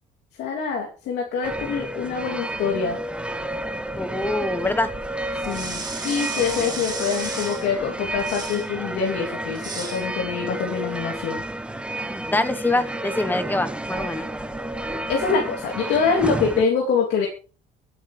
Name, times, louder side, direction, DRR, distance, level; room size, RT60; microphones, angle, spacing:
voice 1, 0.4-3.0 5.4-11.4 15.1-17.3, left 5 dB, 80° left, -1 dB, 3.1 m, -25 dB
sound 1, 1.4-16.6, right 1 dB, 5° right, 1.0 m, -31 dB
voice 2, 4.0-4.9 12.3-14.3, left 2 dB, 10° left, 10 dB, 1.3 m, -24 dB
sound 2, 5.4-7.7 8.2-8.7 9.5-10.0, right 4 dB, 25° right, 4.4 m, -33 dB
24.0 x 9.2 x 3.4 m, 0.36 s
cardioid pair, 110°, 17 cm